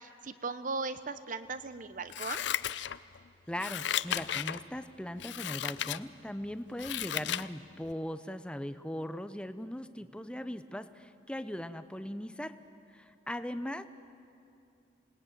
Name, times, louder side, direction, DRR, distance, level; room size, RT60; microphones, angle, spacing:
voice 1, 0.0-2.4, right 4 dB, 45° right, 12 dB, 0.8 m, -38 dB
Scissors, 2.1-3.2 3.6-4.6 5.2-6.0 6.4-7.5 7.9-8.0, left 10 dB, 65° left, 0.5 m, -34 dB
voice 2, 3.5-12.6 12.9-13.8, left 1 dB, 5° left, 11 dB, 0.7 m, -39 dB
27.0 x 19.5 x 9.1 m, 2.6 s
head